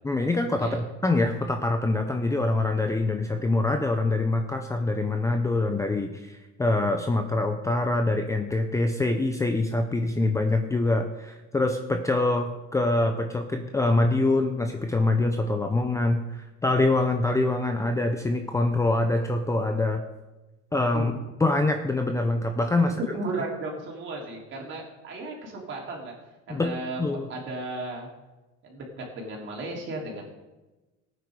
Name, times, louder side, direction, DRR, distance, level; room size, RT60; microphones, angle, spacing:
voice 1, 0.0-0.8 1.0-20.0 20.7-21.1 21.4-22.9 26.5-27.3, left 2 dB, 10° left, 5 dB, 0.7 m, -25 dB
voice 2, 22.8-26.1 26.5-27.0 27.3-28.1 28.6-30.3, right 2 dB, 40° right, -1 dB, 3.9 m, -34 dB
18.0 x 9.3 x 4.9 m, 1.1 s
cardioid pair, 155°, 30 cm